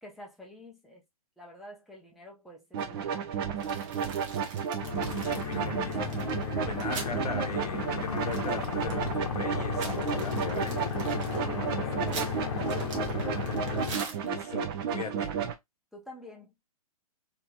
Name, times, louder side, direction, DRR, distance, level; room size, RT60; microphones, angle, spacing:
voice 1, 0.0-1.0 1.4-4.1 11.3-13.1 15.9-16.5, equal, ahead, 0.7 m, -48 dB
sound 1, 2.7-15.5, right 7 dB, 40° right, 0.7 m, -33 dB
sound 2, 3.6-7.2 7.5-7.6 7.9-9.1 9.5-14.6, right 4 dB, 55° right, 1.2 m, -44 dB
sound 3, 4.8-14.0, left 6 dB, 50° left, 0.8 m, -34 dB
voice 2, 5.2-6.2 6.6-10.8 14.1-15.3, left 5 dB, 80° left, 0.9 m, -39 dB
3.0 x 2.9 x 2.2 m
hypercardioid pair, 125°, 19 cm